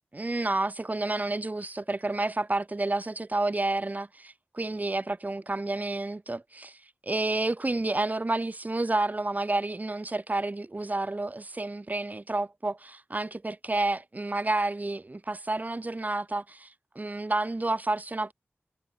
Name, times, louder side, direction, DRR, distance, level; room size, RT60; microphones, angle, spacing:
voice 1, 0.1-6.8 7.0-18.3, right 2 dB, 35° right, 3.5 m, -30 dB
wide cardioid pair, 55°, 5 cm